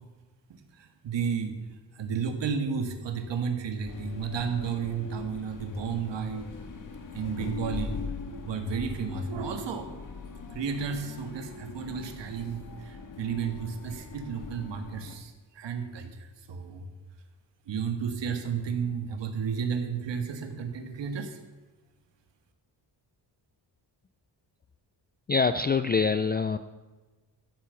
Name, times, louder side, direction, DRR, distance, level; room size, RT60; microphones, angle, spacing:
voice 1, 0.5-1.5 1.9-6.4 7.1-8.0 8.3-9.9 10.5-16.9 17.7-21.4, right 6 dB, 85° right, 6 dB, 1.8 m, -32 dB
sound 1, 3.8-15.2, left 4 dB, 50° left, 1.7 m, -41 dB
voice 2, 25.3-26.6, left 5 dB, 25° left, 11 dB, 0.3 m, -25 dB
13.0 x 10.5 x 7.0 m, 1.2 s
wide cardioid pair, 170°, 42 cm